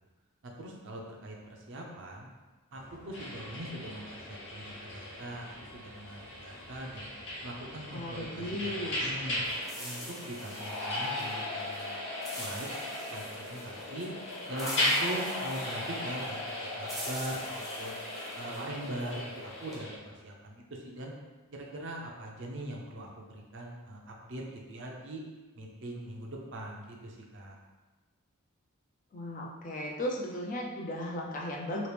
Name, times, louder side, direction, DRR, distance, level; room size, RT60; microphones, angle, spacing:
voice 1, 0.4-2.3 2.7-7.1 7.4-9.4 9.8-12.0 12.3-12.7 13.1-14.1 14.5-16.4 16.8-18.0 18.3-21.1 21.5-25.2 25.5-27.6, right 1 dB, 60° right, 0 dB, 0.6 m, -41 dB
sound 1, 2.7-9.5, left 1 dB, 80° left, 0.7 m, -54 dB
sound 2, 3.1-20.0, left 1 dB, 55° left, 1.0 m, -37 dB
voice 2, 7.9-9.1 29.1-31.9, left 1 dB, 40° left, -1 dB, 0.5 m, -36 dB
sound 3, 9.4-19.8, equal, ahead, 0.7 m, -46 dB
3.0 x 2.9 x 3.3 m, 1.2 s
head